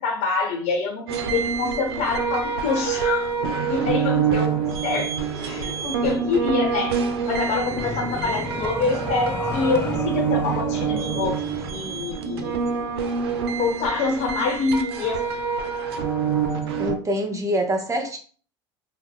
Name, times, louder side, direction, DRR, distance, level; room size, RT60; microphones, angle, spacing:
voice 1, 0.0-3.3 3.7-12.6 13.6-15.2, left 4 dB, 60° left, 2 dB, 0.9 m, -26 dB
sound 1, 1.1-17.0, right 6 dB, 85° right, 0.4 m, -26 dB
sound 2, 4.5-13.4, left 3 dB, 15° left, 0.4 m, -36 dB
voice 2, 16.8-18.2, equal, 25° right, 3 dB, 0.7 m, -25 dB
2.2 x 2.0 x 3.6 m, 0.42 s
hypercardioid pair, 80°, 13 cm